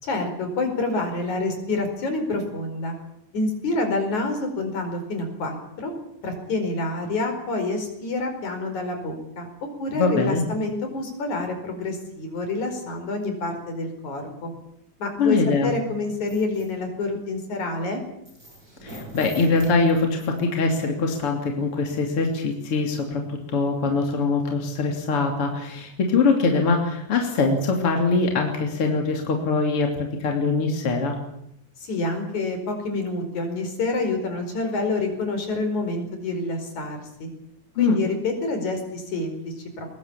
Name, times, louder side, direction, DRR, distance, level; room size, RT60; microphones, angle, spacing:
voice 1, 0.0-3.0 3.3-5.9 6.2-9.5 9.8-14.5 15.0-18.0 31.8-37.3 37.8-39.9, left 2 dB, 70° left, 5 dB, 6.2 m, -27 dB
voice 2, 9.9-10.4 15.2-15.7 18.8-31.2 37.8-38.0, left 4 dB, 45° left, 2 dB, 3.7 m, -23 dB
sound 1, 16.3-16.7 18.3-20.4 21.1-21.2 21.7-21.8, equal, 25° right, 7.9 m, -42 dB
22.5 x 21.0 x 8.7 m, 0.79 s
omnidirectional pair, 3.5 m